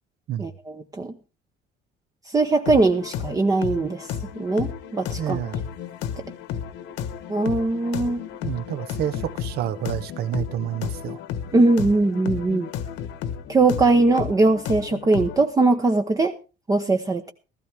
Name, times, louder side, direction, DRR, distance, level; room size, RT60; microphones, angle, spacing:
voice 1, 0.4-1.1 2.3-4.1 4.4-5.4 7.3-8.2 11.5-12.7 13.5-16.3 16.7-17.3, right 3 dB, 20° right, 0.9 m, -21 dB
sound 1, 2.7-15.5, left 8 dB, 80° left, 1.3 m, -33 dB
voice 2, 5.2-5.6 8.4-11.2, right 11 dB, 60° right, 1.0 m, -29 dB
16.0 x 14.0 x 3.4 m
cardioid pair, 140°, 18 cm